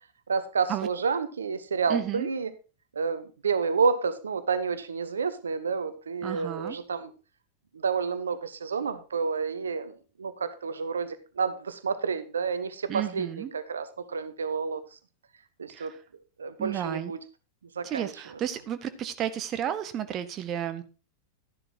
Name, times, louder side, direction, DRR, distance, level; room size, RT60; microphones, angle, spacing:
voice 1, 0.3-2.5 2.9-7.1 7.7-14.8 15.6-15.9 16.4-17.2 17.8-18.1, right 5 dB, 70° right, 13 dB, 1.0 m, -29 dB
voice 2, 1.9-2.3 6.2-6.8 12.9-13.5 15.7-16.0 16.6-17.1 17.8-20.8, right 10 dB, 30° right, 11 dB, 0.8 m, -32 dB
12.0 x 11.0 x 2.9 m, 0.33 s
figure-of-eight pair, 90°, 0 cm